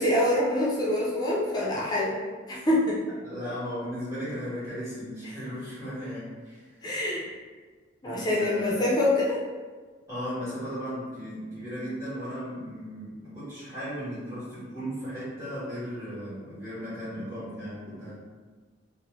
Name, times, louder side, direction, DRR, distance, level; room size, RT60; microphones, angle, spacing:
voice 1, 0.0-2.2 2.5-3.0 6.8-7.3 8.0-9.4, left 1 dB, 20° left, -5 dB, 0.4 m, -25 dB
voice 2, 3.2-6.9 8.0-8.8 10.1-18.1, equal, 15° right, -13 dB, 1.0 m, -36 dB
2.8 x 2.0 x 2.9 m, 1.4 s
head